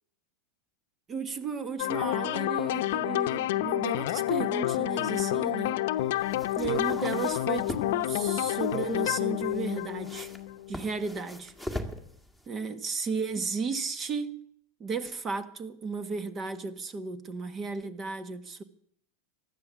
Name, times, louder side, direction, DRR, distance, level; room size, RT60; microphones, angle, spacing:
voice 1, 1.1-5.8 6.6-10.3 10.7-11.5 12.5-14.3 14.8-18.6, right 5 dB, 30° right, 1.5 m, -34 dB
sound 1, 1.8-10.8, left 14 dB, 70° left, 0.8 m, -29 dB
sound 2, 6.0-12.5, left 1 dB, 5° right, 2.1 m, -42 dB
15.5 x 11.5 x 7.3 m
hypercardioid pair, 110°, 0 cm